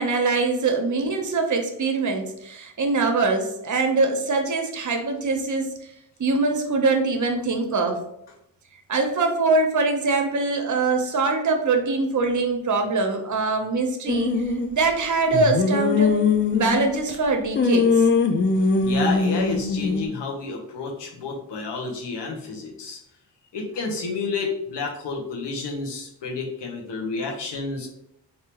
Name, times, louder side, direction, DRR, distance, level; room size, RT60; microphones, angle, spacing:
voice 1, 0.0-5.7 6.2-8.0 8.9-16.1 16.5-18.1, right 3 dB, 45° right, 4 dB, 0.8 m, -23 dB
sound 1, 14.1-14.7 15.3-17.1 17.5-20.1, left 4 dB, 30° left, 0.4 m, -21 dB
voice 2, 18.8-23.0 23.5-27.9, left 4 dB, 75° left, 0 dB, 1.0 m, -30 dB
3.5 x 2.7 x 2.9 m, 0.78 s
cardioid pair, 55°, 42 cm